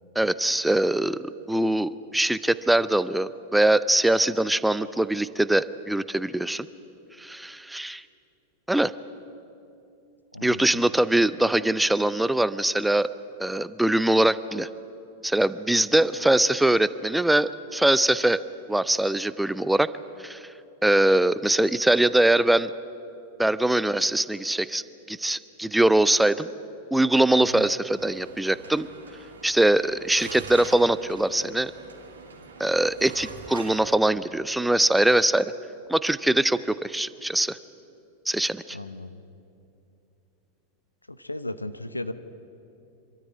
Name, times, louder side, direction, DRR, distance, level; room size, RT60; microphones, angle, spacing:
voice 1, 0.2-6.7 7.2-8.0 8.7-8.9 10.4-13.1 13.4-14.7 15.2-18.4 18.7-19.9 20.2-20.5 20.8-22.7 23.4-24.8 25.1-26.5 26.9-28.9 29.4-31.7 32.6-35.5 35.9-37.6 38.3-38.8, right 1 dB, 5° right, 16 dB, 0.5 m, -22 dB
voice 2, 10.3-10.8 27.5-27.6 38.7-39.2 41.1-42.1, left 2 dB, 85° left, 12 dB, 0.8 m, -35 dB
sound 1, 28.0-34.0, right 4 dB, 70° right, 2.6 m, -44 dB
26.0 x 13.5 x 9.4 m, 2.7 s
figure-of-eight pair, 90°, 0 cm